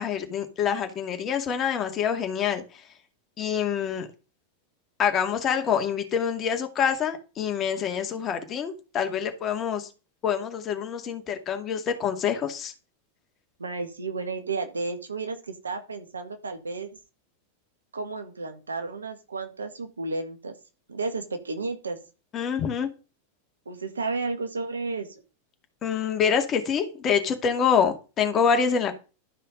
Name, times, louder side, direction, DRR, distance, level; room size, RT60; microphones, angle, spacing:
voice 1, 0.0-2.6 3.4-4.1 5.0-9.9 10.2-12.7 22.3-22.9 25.8-28.9, left 7 dB, 30° left, 5 dB, 2.2 m, -26 dB
voice 2, 13.6-16.9 17.9-20.5 20.9-22.0 23.7-25.1, right 3 dB, 75° right, 7 dB, 1.7 m, -32 dB
12.0 x 5.5 x 5.1 m, 0.33 s
figure-of-eight pair, 90°, 0 cm